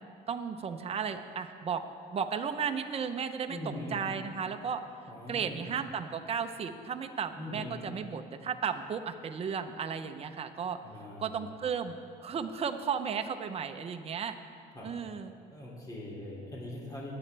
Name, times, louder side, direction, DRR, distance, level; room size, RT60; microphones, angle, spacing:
voice 1, 0.3-1.8 2.1-3.6 3.9-4.8 5.3-10.8 11.2-14.4 14.8-15.3, right 7 dB, 35° right, 7 dB, 0.8 m, -34 dB
voice 2, 3.5-3.9 5.1-5.7 7.4-7.7 10.8-11.5 14.7-14.9 15.5-17.1, left 1 dB, 20° left, -3 dB, 2.7 m, -41 dB
20.5 x 8.7 x 3.4 m, 2.3 s
cardioid pair, 110°, 17 cm